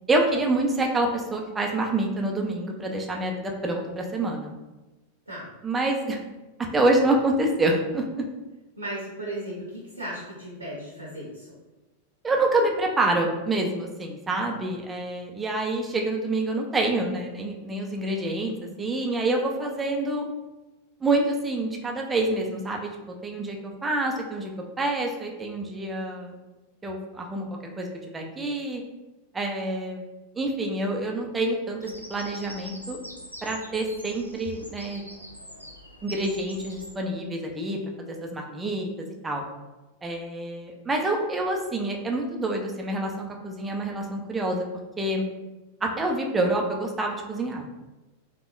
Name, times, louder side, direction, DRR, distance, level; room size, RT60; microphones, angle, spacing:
voice 1, 0.1-4.5 5.6-6.2 6.7-8.0 12.2-20.3 21.0-22.9 23.2-24.5 24.8-26.3 26.8-27.5 27.8-27.9 28.1-28.8 29.3-30.0 30.4-31.8 32.1-33.0 33.4-35.0 36.0-37.8 38.3-38.9 39.2-39.4 40.0-44.7 45.0-45.2 45.8-47.7, right 2 dB, 15° right, 1 dB, 0.4 m, -27 dB
voice 2, 8.8-11.5, right 1 dB, 80° right, -5 dB, 0.7 m, -36 dB
Bird vocalization bird call bird song, 31.8-36.9, equal, 90° left, 0.3 m, -44 dB
3.3 x 2.1 x 2.4 m, 1.1 s
figure-of-eight pair, 90°, 0 cm